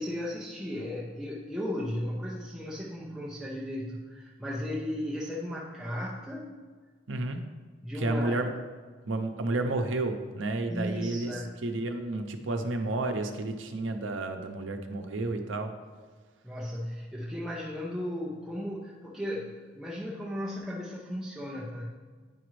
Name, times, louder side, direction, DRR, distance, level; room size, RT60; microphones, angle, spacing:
voice 1, 0.0-6.5 7.8-8.4 10.7-11.5 16.4-21.9, left 1 dB, ahead, -5 dB, 0.6 m, -35 dB
voice 2, 7.1-7.4 8.0-8.5 9.1-11.4 11.6-15.7, right 2 dB, 85° right, 6 dB, 0.7 m, -31 dB
9.3 x 5.0 x 3.1 m, 1.5 s
head